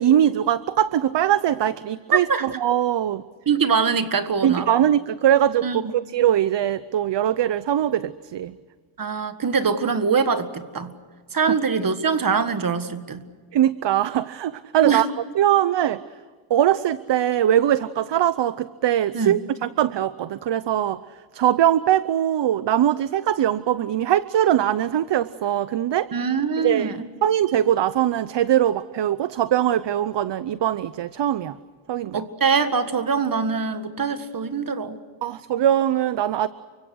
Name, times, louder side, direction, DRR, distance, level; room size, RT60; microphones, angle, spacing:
voice 1, 0.0-3.2 4.4-8.5 13.5-15.1 15.3-16.0 16.5-21.0 21.3-26.1 26.6-26.9 27.2-31.6 31.9-32.2 35.2-36.5, right 11 dB, 60° right, 16 dB, 0.8 m, -21 dB
voice 2, 2.1-2.5 3.5-4.7 5.6-5.8 9.0-10.9 11.3-13.2 14.9-15.1 19.1-19.4 26.1-27.1 32.1-35.0, right 5 dB, 40° right, 10 dB, 1.9 m, -23 dB
29.5 x 25.0 x 6.4 m, 1.5 s
wide cardioid pair, 125°, 49 cm